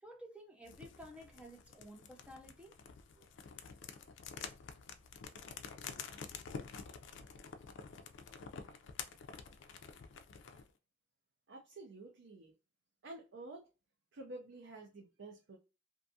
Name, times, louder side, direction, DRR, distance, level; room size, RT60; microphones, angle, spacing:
voice 1, 0.0-2.7 3.1-3.3, equal, 5° right, 0.5 m, -53 dB
sound 1, 0.7-10.7, left 6 dB, 75° left, 0.4 m, -49 dB
voice 2, 11.5-12.5 13.0-13.7 14.1-15.6, right 2 dB, 70° right, 0.5 m, -50 dB
2.6 x 2.3 x 2.6 m
head